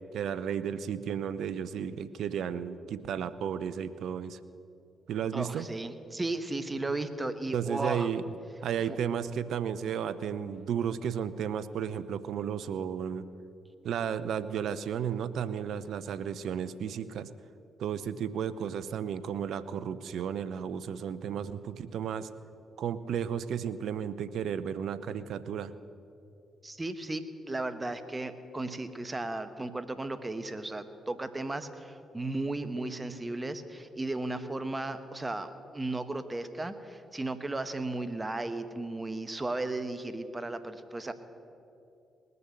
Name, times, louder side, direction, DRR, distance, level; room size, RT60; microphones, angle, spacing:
voice 1, 0.1-4.4 5.1-5.7 7.5-8.2 8.6-13.3 13.8-17.3 17.8-22.3 22.8-25.7, right 8 dB, 70° right, 14 dB, 0.6 m, -33 dB
voice 2, 5.3-8.1 8.9-9.0 26.6-41.1, right 2 dB, 25° right, 10 dB, 1.2 m, -35 dB
20.0 x 6.9 x 7.7 m, 2.6 s
hypercardioid pair, 45°, 0 cm